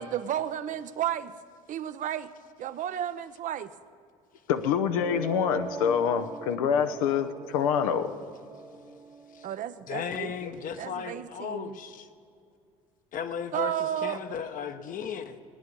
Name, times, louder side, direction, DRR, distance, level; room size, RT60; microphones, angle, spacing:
voice 1, 0.0-1.3 1.7-2.3 2.6-3.7 9.4-10.3 10.8-11.8 13.5-14.2, right 11 dB, 45° right, 12 dB, 0.6 m, -32 dB
voice 2, 4.5-8.1, left 7 dB, 80° left, 9 dB, 0.7 m, -26 dB
sound 1, 4.7-10.7, right 3 dB, 15° right, 0.8 m, -42 dB
voice 3, 9.9-12.1 13.1-15.4, left 7 dB, 50° left, 9 dB, 1.0 m, -35 dB
18.0 x 9.5 x 5.4 m, 2.4 s
hypercardioid pair, 70°, 18 cm